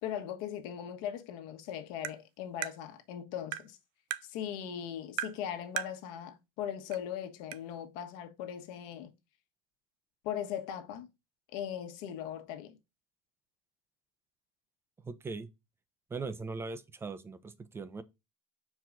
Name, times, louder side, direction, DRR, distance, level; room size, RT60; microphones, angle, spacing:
voice 1, 0.0-3.8 4.2-9.1 10.2-11.1 11.5-12.8, left 9 dB, 60° left, 1.3 m, -39 dB
Tap, 2.0-2.2 2.6-2.8 3.5-3.7 4.1-4.3 5.2-5.4 5.8-6.0 6.9-7.0 7.5-7.6, right 12 dB, 55° right, 0.5 m, -35 dB
voice 2, 15.0-15.5 16.1-18.0, right 4 dB, 15° right, 0.7 m, -40 dB
5.8 x 4.7 x 3.8 m
supercardioid pair, 135°, 18 cm